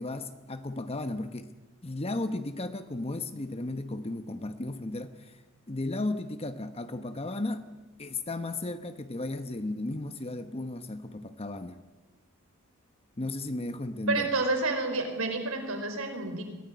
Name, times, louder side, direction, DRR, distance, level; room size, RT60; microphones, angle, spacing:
voice 1, 0.0-1.5 1.8-5.4 5.7-7.7 8.0-11.8 13.2-14.3, left 2 dB, 30° left, 9 dB, 1.0 m, -34 dB
voice 2, 14.1-16.4, right 3 dB, 75° right, 5 dB, 4.8 m, -29 dB
23.0 x 16.5 x 9.8 m, 1.2 s
head